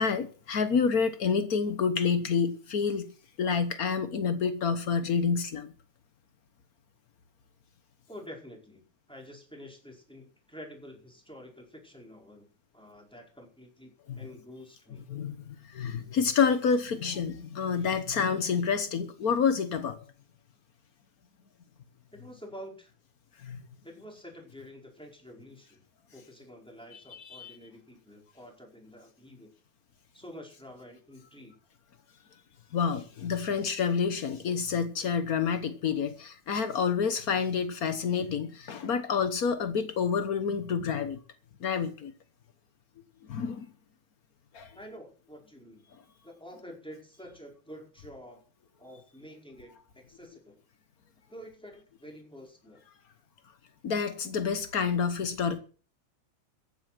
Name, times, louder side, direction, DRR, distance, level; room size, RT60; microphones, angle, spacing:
voice 1, 0.0-3.1 3.4-5.7 14.1-14.2 15.1-20.0 23.4-23.6 26.9-27.0 27.3-27.6 32.7-41.2 41.6-42.1 43.3-43.7 44.5-44.7 53.8-55.6, left 6 dB, 90° left, 0.8 m, -28 dB
voice 2, 8.1-12.5 12.7-13.9 14.2-15.0 22.1-22.9 23.8-25.8 26.1-29.5 30.1-31.6 44.7-45.9 46.2-48.4 48.8-50.6 51.3-52.8, equal, ahead, 4.8 m, -48 dB
15.0 x 10.5 x 6.1 m
omnidirectional pair, 3.3 m